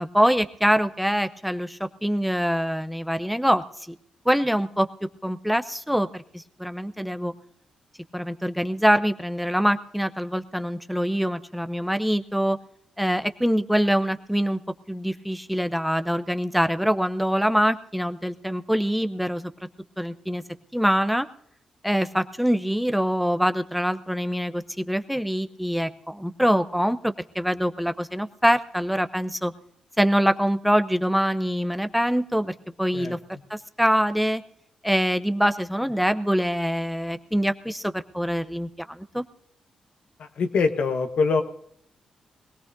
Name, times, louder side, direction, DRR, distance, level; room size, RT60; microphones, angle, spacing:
voice 1, 0.0-4.0 4.2-4.9 5.2-7.3 8.1-12.6 13.0-14.6 14.9-19.5 20.0-20.4 20.7-21.3 21.8-29.5 30.0-33.2 33.5-34.4 34.8-39.2, equal, ahead, 10 dB, 0.8 m, -24 dB
voice 2, 40.4-41.4, left 4 dB, 70° left, 7 dB, 1.1 m, -23 dB
22.0 x 17.0 x 2.7 m, 0.71 s
supercardioid pair, 50°, 2 cm